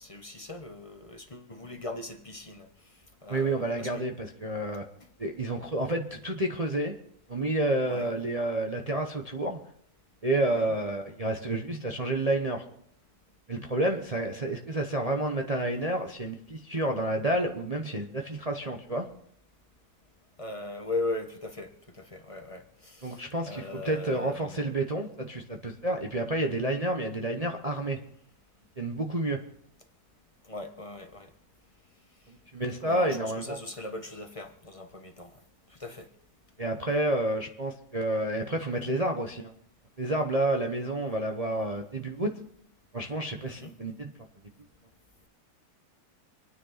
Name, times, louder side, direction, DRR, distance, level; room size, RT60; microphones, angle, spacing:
voice 1, 0.0-2.7 3.2-4.0 7.8-8.1 10.4-10.7 20.4-24.7 30.4-31.3 32.8-35.4 35.7-36.1 43.5-43.7, left 2 dB, 20° left, 1.0 m, -39 dB
voice 2, 3.3-4.8 5.2-7.0 7.3-9.6 10.2-12.6 13.5-19.1 23.0-28.0 28.8-29.4 32.3-33.6 36.6-39.5 40.0-42.3 42.9-44.1, right 1 dB, 25° right, 0.9 m, -29 dB
26.0 x 9.7 x 4.1 m
omnidirectional pair, 1.9 m